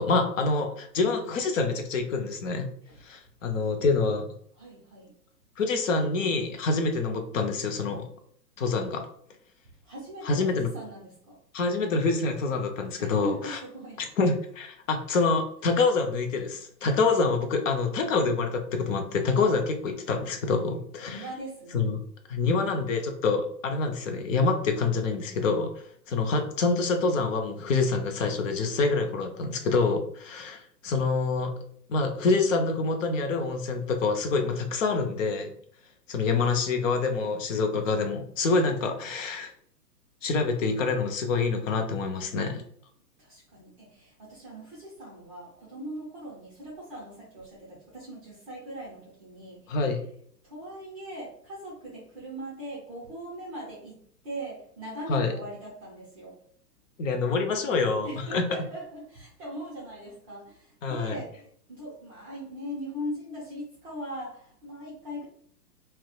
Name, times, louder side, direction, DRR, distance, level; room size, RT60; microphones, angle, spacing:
voice 1, 0.0-2.7 3.0-4.3 5.6-8.1 8.6-9.0 10.3-10.7 11.5-13.6 14.2-21.2 21.7-22.0 22.3-31.5 31.9-35.5 36.1-39.5 40.2-42.6 49.7-50.0 55.1-55.3 57.0-58.4 60.8-61.1, left 4 dB, 50° left, 5 dB, 0.5 m, -26 dB
voice 2, 2.8-3.1 3.5-3.7 4.5-5.1 9.8-11.4 13.0-14.0 21.1-21.8 43.2-49.9 50.4-56.4 58.0-65.3, equal, 20° right, -5 dB, 0.5 m, -40 dB
2.7 x 2.0 x 2.2 m, 0.63 s
hypercardioid pair, 130°, 49 cm